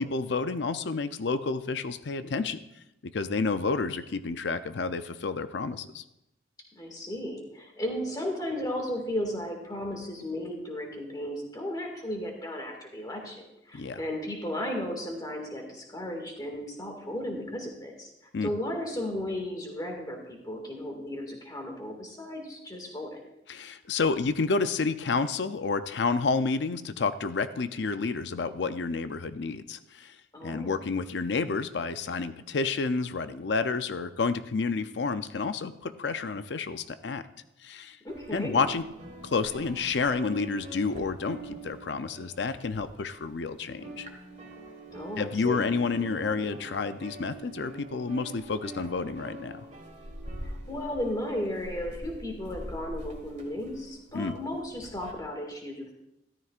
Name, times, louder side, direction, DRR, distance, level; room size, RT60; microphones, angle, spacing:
voice 1, 0.0-2.6 3.0-6.0 13.7-14.0 18.3-18.5 23.5-30.2 30.4-37.2 37.6-38.0 38.3-38.8 39.2-44.1 45.2-49.7 54.1-54.4, left 4 dB, 65° left, 11 dB, 0.5 m, -30 dB
voice 2, 6.8-18.1 18.4-23.2 30.3-30.8 38.0-38.6 44.9-45.7 50.4-55.9, left 1 dB, 20° left, 2 dB, 2.0 m, -35 dB
sound 1, 38.1-43.4 43.7-55.1, right 1 dB, 40° right, 1.6 m, -44 dB
14.0 x 13.0 x 2.5 m, 0.87 s
head